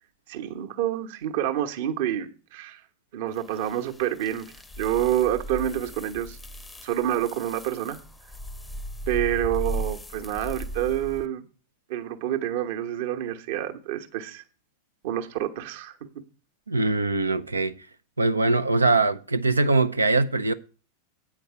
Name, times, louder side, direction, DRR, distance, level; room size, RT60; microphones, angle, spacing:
voice 1, 0.3-2.8 3.1-4.5 4.8-6.4 6.8-8.0 9.1-11.4 11.9-14.4 15.0-16.0, right 11 dB, 50° right, 1.1 m, -28 dB
sound 1, 3.4-11.3, right 1 dB, 10° left, 0.7 m, -37 dB
voice 2, 16.7-17.9 18.2-20.5, right 3 dB, 80° right, 0.6 m, -22 dB
8.6 x 5.2 x 7.4 m
figure-of-eight pair, 90°, 0 cm